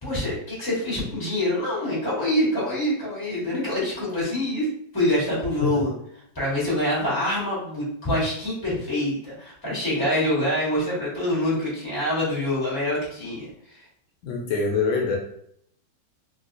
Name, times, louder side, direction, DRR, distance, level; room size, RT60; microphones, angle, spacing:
voice 1, 0.0-4.7 4.9-5.9 6.3-13.8, left 1 dB, 15° left, -7 dB, 1.2 m, -25 dB
voice 2, 14.2-15.2, left 4 dB, 80° left, 0 dB, 1.3 m, -24 dB
3.1 x 2.7 x 2.5 m, 0.70 s
omnidirectional pair, 2.2 m